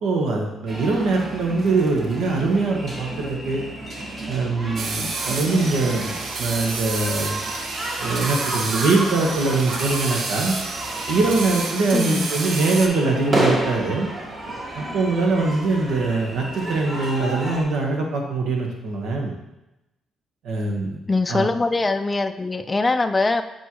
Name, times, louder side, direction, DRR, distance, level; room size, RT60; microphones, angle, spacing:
voice 1, 0.0-3.6 4.3-7.3 8.0-10.5 11.1-14.1 14.8-19.3 20.4-21.0 21.3-21.5, right 3 dB, 85° right, 0 dB, 1.3 m, -22 dB
sound 1, 0.7-17.6, right 1 dB, 40° right, 1.6 m, -31 dB
sound 2, 4.8-12.9, right 3 dB, 65° right, 0.7 m, -30 dB
voice 2, 11.9-12.3 21.1-23.4, left 3 dB, 20° left, 7 dB, 0.3 m, -22 dB
8.1 x 4.4 x 3.1 m, 0.95 s
cardioid pair, 90°, 0 cm